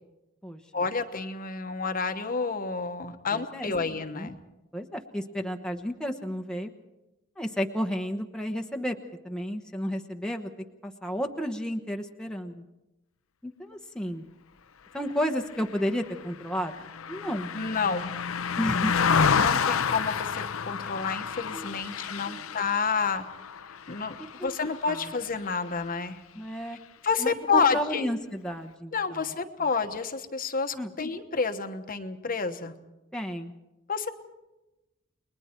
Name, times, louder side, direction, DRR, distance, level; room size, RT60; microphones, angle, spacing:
voice 1, 0.7-4.4 17.5-18.1 19.4-23.2 23.9-24.1 24.4-26.2 27.0-28.1 28.9-32.7 33.9-34.1, left 5 dB, 45° left, 7 dB, 1.2 m, -29 dB
voice 2, 3.3-3.7 4.1-4.3 4.7-6.7 7.4-9.0 9.2-10.5 10.8-12.6 13.4-14.3 14.9-16.7 17.1-17.5 18.6-18.9 21.5-21.8 22.3-22.5 24.4-24.6 24.9-25.0 26.4-26.8 27.2-29.2 30.7-30.9 33.1-33.5, equal, 5° left, 3 dB, 1.1 m, -32 dB
Car passing by, 15.5-25.1 25.5-25.7, left 6 dB, 80° left, 0.7 m, -29 dB
30.0 x 21.0 x 4.5 m, 0.99 s
head